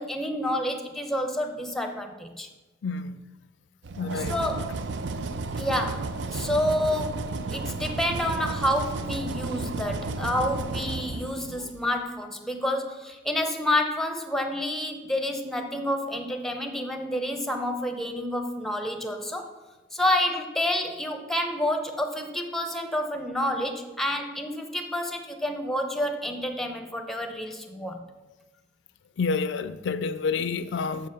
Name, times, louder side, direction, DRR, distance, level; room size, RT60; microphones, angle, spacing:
voice 1, 0.0-2.5 4.1-4.8 5.6-19.5 19.9-28.0, left 1 dB, ahead, 0.7 m, -29 dB
voice 2, 2.8-3.2 4.0-4.4 5.2-5.3 29.2-31.1, left 4 dB, 80° left, 0.4 m, -29 dB
sound 1, 3.8-11.8, right 3 dB, 75° right, 0.5 m, -33 dB
6.6 x 5.5 x 5.7 m
head